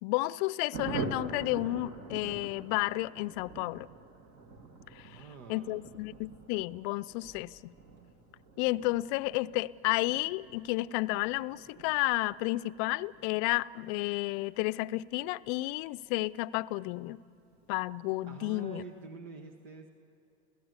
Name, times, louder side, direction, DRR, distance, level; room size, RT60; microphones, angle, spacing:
voice 1, 0.0-3.9 4.9-5.2 5.5-7.7 8.6-17.2 17.7-18.8, left 20 dB, 55° left, 0.6 m, -32 dB
Thunder, 0.7-16.8 17.1-17.2 17.5-17.6 17.9-18.3, right 3 dB, 50° right, 2.7 m, -45 dB
voice 2, 5.0-5.8 18.2-19.9, right 5 dB, 65° right, 1.6 m, -47 dB
29.5 x 16.5 x 8.1 m
hypercardioid pair, 100°, 33 cm